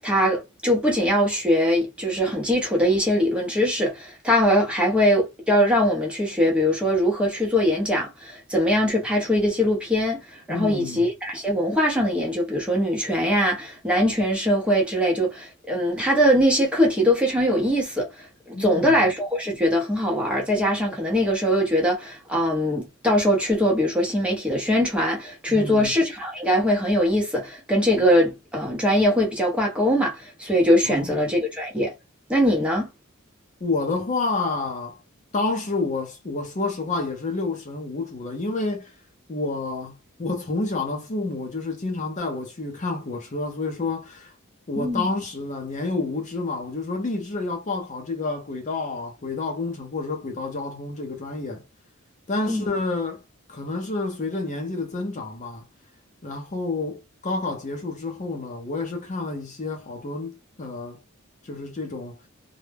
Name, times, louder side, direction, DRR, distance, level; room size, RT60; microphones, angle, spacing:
voice 1, 0.0-31.9 32.3-32.9 44.8-45.0 52.5-52.6, equal, 5° right, 0.8 m, -22 dB
voice 2, 10.5-11.1 18.5-19.0 25.5-25.9 30.8-31.3 33.6-35.0 35.3-38.9 39.3-44.3 44.7-51.6 52.3-53.2 53.5-55.7 56.2-61.0 61.4-62.2, left 3 dB, 35° left, 0.5 m, -29 dB
2.1 x 2.0 x 3.2 m
head